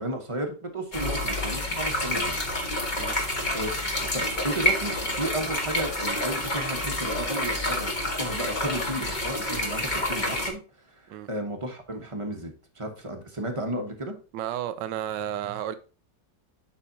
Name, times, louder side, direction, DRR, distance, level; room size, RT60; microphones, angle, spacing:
voice 1, 0.0-2.4 3.5-10.6 10.9-14.2, right 1 dB, 20° right, 1.0 m, -33 dB
sound 1, 0.9-10.5, left 1 dB, 30° left, 1.3 m, -28 dB
voice 2, 14.3-15.8, right 11 dB, 85° right, 1.3 m, -32 dB
11.0 x 4.2 x 2.7 m
omnidirectional pair, 1.9 m